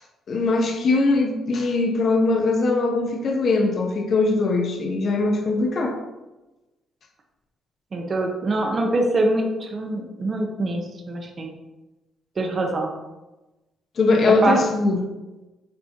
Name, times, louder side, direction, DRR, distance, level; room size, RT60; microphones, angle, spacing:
voice 1, 0.3-6.0 14.0-15.0, left 3 dB, 55° left, 2 dB, 1.0 m, -21 dB
voice 2, 7.9-11.5 12.4-12.9 14.4-14.6, right 2 dB, 40° right, 2 dB, 1.1 m, -24 dB
7.6 x 4.2 x 2.9 m, 1.1 s
cardioid pair, 90°, 0 cm